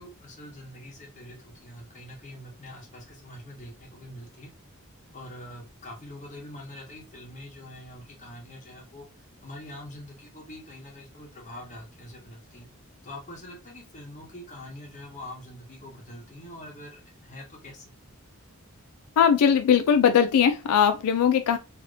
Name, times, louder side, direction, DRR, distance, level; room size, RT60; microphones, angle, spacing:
voice 1, 0.0-4.5 5.1-9.1 9.4-12.7 13.0-17.9, left 1 dB, 35° left, 1.2 m, -44 dB
voice 2, 19.2-21.6, left 7 dB, 85° left, 0.3 m, -20 dB
3.2 x 2.9 x 2.5 m
head